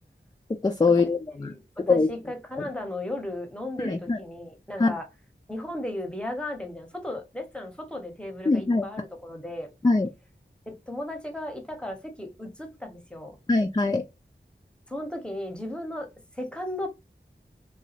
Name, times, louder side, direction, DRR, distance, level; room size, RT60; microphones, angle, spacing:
voice 1, 0.6-1.5 1.9-2.1 3.8-4.2 4.8-4.9 8.5-8.9 9.8-10.1 13.5-14.0, left 3 dB, 20° left, 0.3 m, -22 dB
voice 2, 1.3-5.1 5.5-9.7 10.7-13.4 14.9-16.1 16.3-16.9, left 1 dB, 5° left, 0.8 m, -35 dB
2.9 x 2.3 x 2.8 m
wide cardioid pair, 40°, 20 cm